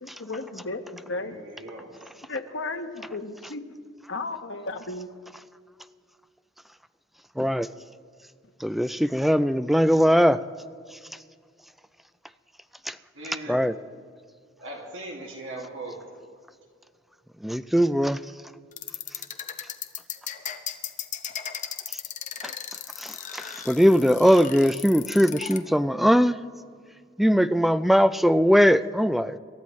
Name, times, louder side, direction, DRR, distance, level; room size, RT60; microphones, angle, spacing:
voice 1, 0.0-1.4 2.3-3.8 4.1-5.1, left 3 dB, 70° left, 6 dB, 1.1 m, -34 dB
voice 2, 1.3-1.9 13.1-13.7 14.6-16.0, right 2 dB, 70° right, -1 dB, 2.2 m, -39 dB
voice 3, 7.4-7.7 8.6-10.4 12.9-13.0 13.5-13.8 17.4-18.2 22.4-22.5 23.0-26.4 27.2-29.4, equal, ahead, 12 dB, 0.3 m, -20 dB
sound 1, 18.7-25.6, left 9 dB, 40° left, 0.9 m, -35 dB
27.0 x 13.0 x 3.2 m, 2.1 s
head